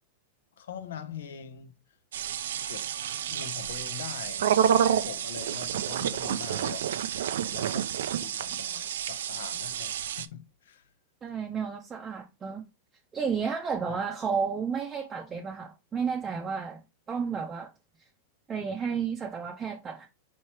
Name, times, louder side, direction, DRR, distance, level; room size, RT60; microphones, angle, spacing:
voice 1, 0.6-1.7 2.7-2.9 3.3-4.5 5.0-6.9 7.4-7.9 8.2-10.8 13.9-14.0, left 8 dB, 85° left, 0.8 m, -42 dB
sound 1, 2.1-10.3, right 9 dB, 80° right, 0.4 m, -29 dB
voice 2, 11.2-12.6 13.1-16.8 17.1-17.7 18.5-20.1, right 6 dB, 20° right, 0.6 m, -32 dB
4.4 x 3.1 x 2.8 m
hypercardioid pair, 130°, 0 cm